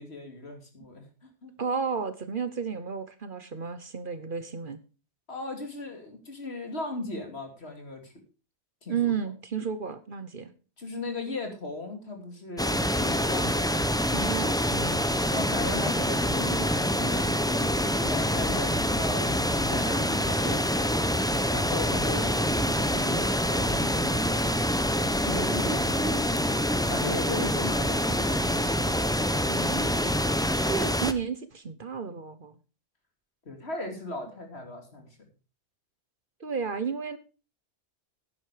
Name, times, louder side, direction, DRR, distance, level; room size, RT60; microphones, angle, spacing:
voice 1, 0.0-1.5 5.3-8.1 8.8-9.1 10.8-13.9 15.3-20.9 21.5-24.1 25.2-26.6 26.9-28.7 33.5-35.1, left 2 dB, 65° left, 4 dB, 3.0 m, -37 dB
voice 2, 1.6-4.8 8.9-10.5 14.1-15.1 29.5-30.2 30.7-32.5 36.4-37.2, right 6 dB, 50° right, 12 dB, 1.1 m, -32 dB
sound 1, 12.6-31.1, equal, 5° left, 0.6 m, -26 dB
10.5 x 9.9 x 4.9 m, 0.34 s
omnidirectional pair, 1.2 m